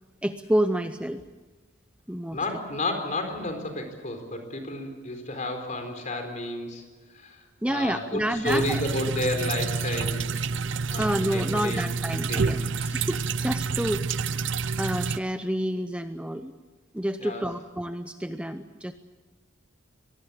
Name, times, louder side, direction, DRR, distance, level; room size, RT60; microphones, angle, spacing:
voice 1, 0.2-1.2 2.1-2.4 7.6-8.8 11.0-16.5 16.9-18.9, right 1 dB, 5° right, 9 dB, 0.6 m, -29 dB
voice 2, 2.3-6.8 7.1-7.4 7.7-10.3 10.9-11.9 12.3-12.9 17.2-17.5, left 1 dB, 40° left, 6 dB, 4.3 m, -32 dB
sound 1, 8.4-15.2, right 4 dB, 65° right, 0.6 m, -28 dB
24.5 x 19.5 x 8.5 m, 1.3 s
head